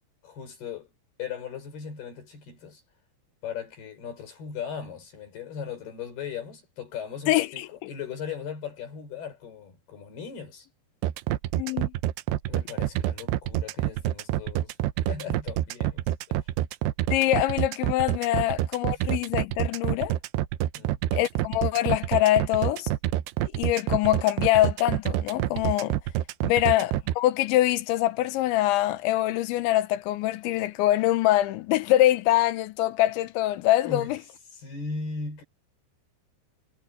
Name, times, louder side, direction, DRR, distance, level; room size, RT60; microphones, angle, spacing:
voice 1, 0.2-0.9 1.2-2.8 3.4-10.7 12.5-14.7 15.1-16.5 18.3-18.5 18.9-19.0 20.7-21.0 26.4-26.6 33.8-34.2 34.5-35.4, left 6 dB, 60° left, 6.8 m, -38 dB
voice 2, 7.3-7.9 11.6-11.9 17.1-20.2 21.1-22.9 23.5-26.0 26.4-34.2, left 15 dB, 85° left, 3.3 m, -24 dB
sound 1, 11.0-27.1, right 13 dB, 75° right, 2.7 m, -27 dB
omnidirectional pair, 5.2 m